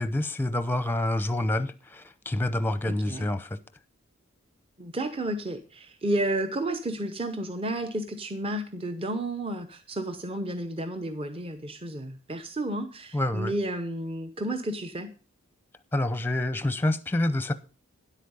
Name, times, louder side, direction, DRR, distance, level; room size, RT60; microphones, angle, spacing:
voice 1, 0.0-3.6 13.1-13.5 15.9-17.5, left 1 dB, 10° left, 0.6 m, -27 dB
voice 2, 2.8-3.3 4.8-15.1, right 1 dB, 25° right, 0.8 m, -32 dB
10.0 x 8.3 x 5.4 m
head